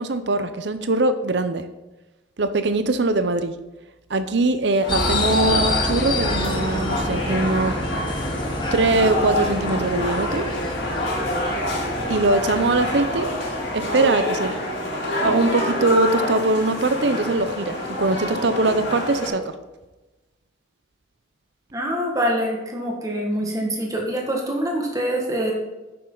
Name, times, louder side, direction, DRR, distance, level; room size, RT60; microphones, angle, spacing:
voice 1, 0.0-1.7 2.4-3.5 4.1-7.7 8.7-10.4 12.1-13.3 13.7-14.5 14.8-19.5, right 2 dB, 65° right, 10 dB, 0.7 m, -22 dB
sound 1, 4.8-19.3, left 1 dB, 75° left, 3.9 m, -27 dB
sound 2, 4.9-14.8, left 2 dB, 25° left, 1.2 m, -28 dB
voice 2, 21.7-25.5, equal, 20° right, -1 dB, 1.8 m, -25 dB
11.0 x 8.6 x 3.9 m, 1.1 s
head